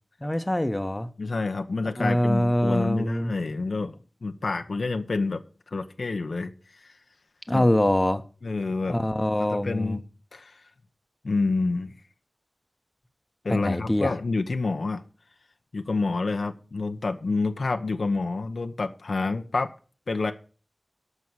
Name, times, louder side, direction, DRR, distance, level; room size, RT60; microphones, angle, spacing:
voice 1, 0.2-1.1 2.0-3.3 7.5-8.2 8.9-10.0 13.5-14.1, left 1 dB, 20° left, 8 dB, 1.1 m, -24 dB
voice 2, 1.2-5.4 5.7-6.5 7.5-7.7 8.4-9.0 9.5-10.0 10.3-10.6 11.2-11.9 13.4-15.0 15.7-19.7 20.1-20.3, left 3 dB, 80° left, 6 dB, 1.0 m, -28 dB
13.0 x 5.5 x 6.3 m, 0.38 s
cardioid pair, 45°, 0 cm